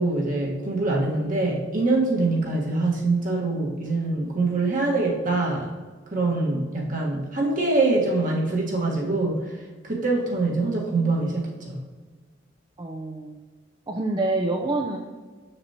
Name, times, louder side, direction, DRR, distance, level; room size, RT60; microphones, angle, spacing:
voice 1, 0.0-5.7 6.1-9.4 9.8-11.8, right 2 dB, 45° right, -2 dB, 1.5 m, -24 dB
voice 2, 12.8-13.4 13.9-15.0, right 2 dB, 20° right, 1 dB, 0.5 m, -26 dB
6.9 x 6.8 x 2.9 m, 1.4 s
head